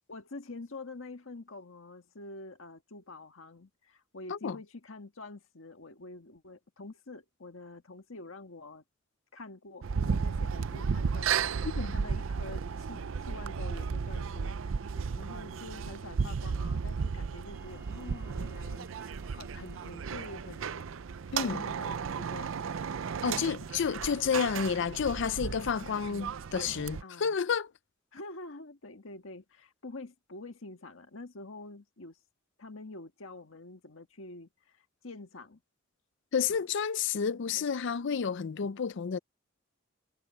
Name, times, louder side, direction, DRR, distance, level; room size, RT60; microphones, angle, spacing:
voice 1, 0.1-8.8 9.3-20.9 21.3-22.9 26.0-26.3 26.6-27.4 28.1-32.2 32.6-35.6 36.5-36.6 37.5-37.6, left 2 dB, 80° left, 1.6 m, -47 dB
sound 1, 9.8-27.0, right 6 dB, 75° right, 0.5 m, -34 dB
Wind instrument woodwind instrument, 17.5-21.5, right 3 dB, 15° right, 3.0 m, -64 dB
voice 2, 23.2-27.7 36.3-39.2, left 6 dB, 65° left, 0.5 m, -30 dB
head